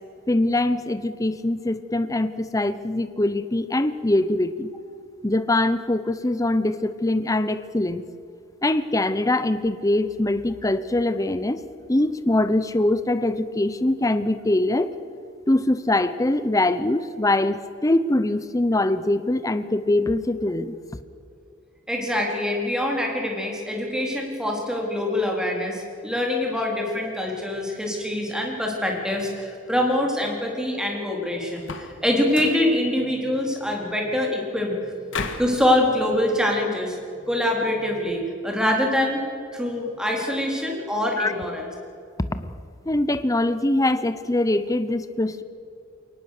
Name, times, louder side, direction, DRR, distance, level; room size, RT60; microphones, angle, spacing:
voice 1, 0.3-4.7 5.2-8.0 8.6-11.6 11.9-14.9 15.5-20.8 41.2-41.3 42.3-42.5 42.9-45.4, left 1 dB, 15° left, 12 dB, 0.7 m, -23 dB
voice 2, 21.9-34.8 35.4-39.2 39.5-41.7, left 1 dB, 5° right, 0 dB, 3.8 m, -24 dB
sound 1, 31.6-32.0 32.3-32.7 35.1-35.6, left 4 dB, 70° left, 1.7 m, -32 dB
23.0 x 19.0 x 6.6 m, 2.4 s
head